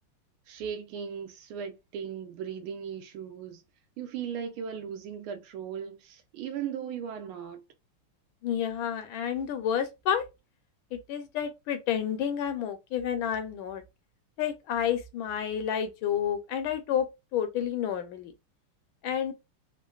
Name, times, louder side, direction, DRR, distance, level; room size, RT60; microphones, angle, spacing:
voice 1, 0.5-3.6 4.0-7.6, right 8 dB, 75° right, 1.5 m, -37 dB
voice 2, 8.4-10.2 10.9-13.8 14.4-18.3 19.0-19.3, left 9 dB, 75° left, 1.3 m, -30 dB
3.7 x 2.1 x 2.3 m
omnidirectional pair, 2.4 m